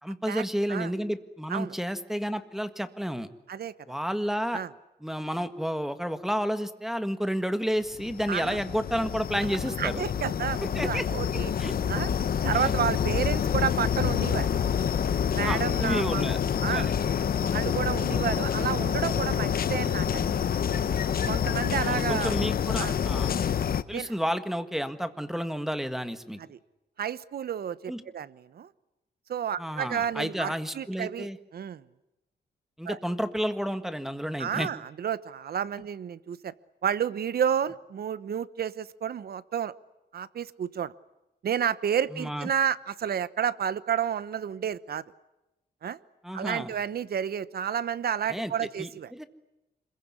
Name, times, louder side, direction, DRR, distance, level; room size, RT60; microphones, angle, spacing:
voice 1, 0.0-3.3 3.9-4.6 5.0-10.0 10.6-11.0 11.6-11.7 12.5-12.6 15.4-16.9 21.8-23.3 23.9-26.4 27.9-28.0 29.6-31.4 32.8-34.7 42.1-42.5 46.2-46.7 48.3-48.5 48.8-49.2, equal, ahead, 10 dB, 1.7 m, -31 dB
sound 1, 7.9-23.8, left 8 dB, 60° left, 0.9 m, -27 dB
voice 2, 8.3-8.6 9.4-9.5 9.8-11.5 11.9-12.1 12.4-14.5 15.3-16.2 16.6-16.9 17.4-20.4 21.3-22.3 22.8-23.0 23.9-24.1 26.4-26.6 27.0-28.7 29.3-31.8 32.8-33.0 34.4-36.5 36.8-39.7 40.1-40.9 41.4-45.0 45.8-46.0 46.3-49.1, right 8 dB, 65° right, 16 dB, 1.0 m, -31 dB
26.0 x 22.5 x 9.8 m, 0.94 s
wide cardioid pair, 125°, 17 cm